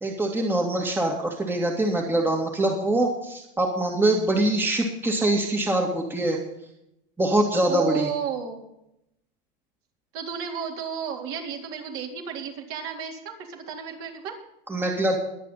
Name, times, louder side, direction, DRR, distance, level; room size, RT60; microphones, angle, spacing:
voice 1, 0.0-6.4 7.2-8.1 14.7-15.2, right 1 dB, 5° right, 1 dB, 2.2 m, -24 dB
voice 2, 7.7-8.6 10.1-14.3, right 8 dB, 45° right, 1 dB, 3.8 m, -32 dB
23.0 x 8.4 x 4.1 m, 0.80 s
supercardioid pair, 130°, 29 cm